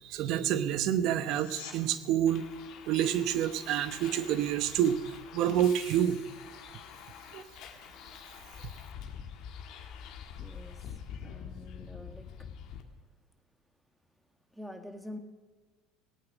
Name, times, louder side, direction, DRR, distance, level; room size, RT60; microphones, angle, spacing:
voice 1, 0.0-2.5 2.9-5.0 5.3-6.2 7.3-7.4, right 10 dB, 60° right, 13 dB, 0.9 m, -28 dB
sound 1, 1.2-1.8 13.1-13.2, left 7 dB, 85° left, 2.6 m, -46 dB
Bus, 2.3-12.8, left 7 dB, 60° left, 1.6 m, -46 dB
voice 2, 10.4-10.9 11.2-12.3 14.5-15.2, left 1 dB, ahead, 6 dB, 1.8 m, -46 dB
18.0 x 8.8 x 6.1 m, 1.4 s
hypercardioid pair, 80°, 0 cm